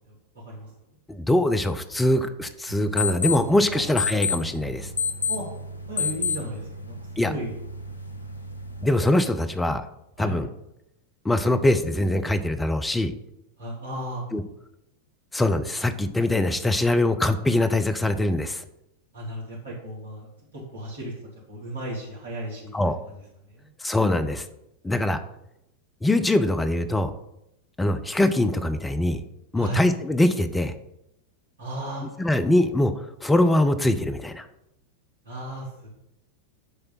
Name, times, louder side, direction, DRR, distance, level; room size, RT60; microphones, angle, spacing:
voice 1, 0.1-0.7 3.7-3.9 5.3-5.5 5.9-6.9 7.2-7.5 10.2-10.4 13.6-14.2 19.1-21.1 21.5-23.2 23.5-23.7 24.9-25.0 29.5-29.8 31.6-32.1 35.2-35.9, right 1 dB, 70° right, -5 dB, 2.6 m, -35 dB
voice 2, 1.1-4.9 7.2-7.3 8.8-9.8 10.2-10.5 11.2-13.1 14.3-14.4 15.3-18.6 22.7-23.0 23.8-24.5 24.8-25.2 26.0-27.2 27.8-29.2 29.5-30.7 32.2-34.5, left 1 dB, 10° left, 10 dB, 0.6 m, -23 dB
sound 1, 2.7-9.2, left 5 dB, 80° left, 0.7 m, -31 dB
9.7 x 3.4 x 5.6 m, 0.84 s
figure-of-eight pair, 90°, 0 cm